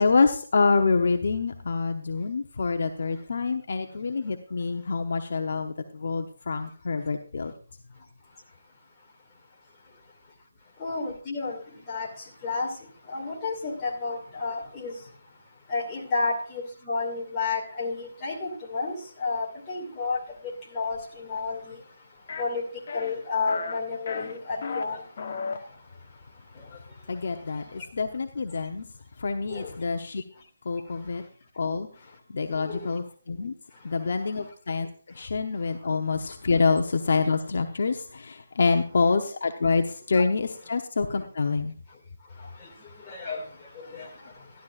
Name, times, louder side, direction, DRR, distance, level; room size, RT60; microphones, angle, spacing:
voice 1, 0.0-7.5 27.1-28.9 29.2-30.2 30.6-31.2 31.5-31.9 32.3-33.5 33.8-34.9 35.1-41.7, left 4 dB, 55° left, 5 dB, 0.9 m, -26 dB
voice 2, 10.8-11.6 11.9-12.1 12.4-12.7 13.1-14.9 15.7-20.2 20.7-21.7 22.4-22.6 22.9-25.0 29.5-29.7 32.7-32.9 43.1-43.4 43.8-44.1, left 4 dB, 15° left, -4 dB, 2.5 m, -31 dB
sound 1, 22.3-22.4 22.9-23.1 23.5-23.8 24.1-24.8 25.2-25.6, left 5 dB, 40° left, 1.2 m, -33 dB
12.5 x 12.5 x 2.5 m, 0.42 s
hypercardioid pair, 170°, 0 cm